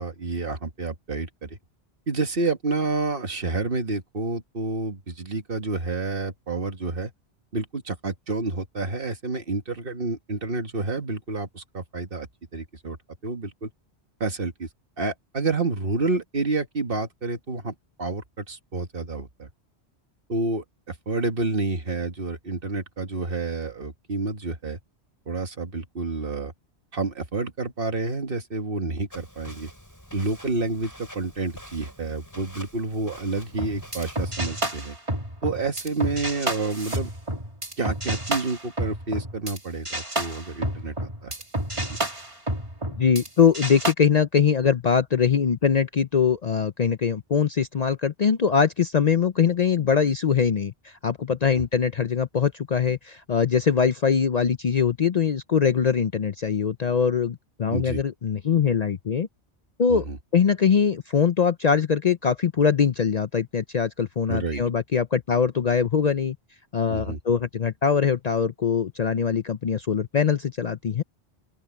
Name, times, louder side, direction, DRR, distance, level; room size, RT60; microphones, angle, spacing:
voice 1, 0.0-1.6 2.1-7.1 7.5-12.3 12.5-13.0 13.2-13.7 14.2-14.7 15.0-19.5 20.3-24.8 25.3-26.5 26.9-29.7 30.1-34.9 35.4-37.1 37.8-41.3 51.5-51.6 57.7-58.0 59.9-60.2 64.3-64.6 66.9-67.2, right 3 dB, 55° right, 1.8 m, -29 dB
Walk footsteps, 29.1-34.3, equal, 15° left, 6.8 m, -46 dB
sound 1, 33.5-39.6 39.8-43.3 43.5-43.9, right 1 dB, 30° right, 2.7 m, -30 dB
voice 2, 43.0-59.3 59.8-60.0 60.3-66.4 66.7-71.0, left 6 dB, 45° left, 0.6 m, -22 dB
open air
omnidirectional pair, 1.1 m